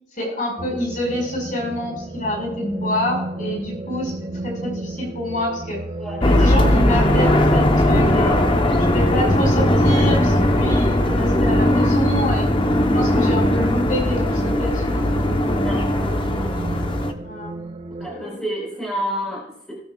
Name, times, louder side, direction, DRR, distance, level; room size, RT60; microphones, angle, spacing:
voice 1, 0.2-4.1 4.4-5.8 6.2-8.4 8.8-12.5 12.9-15.6 17.2-17.6 18.0-18.4, equal, 40° left, -2 dB, 5.3 m, -27 dB
sound 1, 0.6-18.1, right 2 dB, 30° right, 0.5 m, -33 dB
sound 2, 6.2-17.1, left 1 dB, 25° left, 0.9 m, -18 dB
voice 2, 15.6-16.2 18.0-19.8, equal, 5° left, -4 dB, 4.4 m, -30 dB
20.5 x 9.7 x 2.4 m, 0.82 s
head